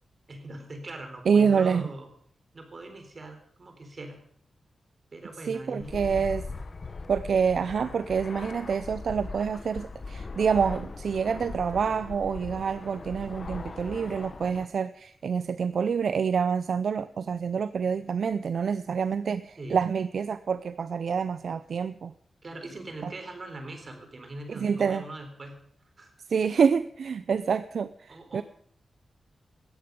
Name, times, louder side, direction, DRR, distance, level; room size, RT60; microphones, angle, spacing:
voice 1, 0.3-2.1 2.5-4.3 5.1-6.3 19.6-19.8 22.4-25.6 26.0-26.1 28.1-28.4, right 2 dB, 35° right, 6 dB, 3.9 m, -41 dB
voice 2, 1.3-1.9 5.5-6.4 7.1-22.1 23.0-23.1 24.6-25.0 26.3-28.4, right 6 dB, 65° right, 13 dB, 0.5 m, -27 dB
Fixed-wing aircraft airplane, 5.8-14.7, left 3 dB, 35° left, 1.2 m, -40 dB
18.0 x 13.5 x 5.3 m, 0.63 s
wide cardioid pair, 160°, 0 cm